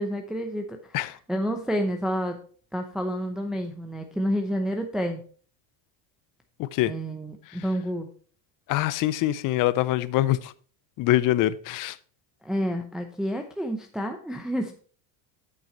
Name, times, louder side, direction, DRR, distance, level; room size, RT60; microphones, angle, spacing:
voice 1, 0.0-2.4 2.7-5.2 6.8-8.1 12.4-14.7, equal, ahead, 0.6 m, -29 dB
voice 2, 6.6-6.9 8.7-10.4 11.0-11.9, left 15 dB, 45° left, 0.6 m, -24 dB
8.0 x 6.2 x 4.4 m
cardioid pair, 135°, 44 cm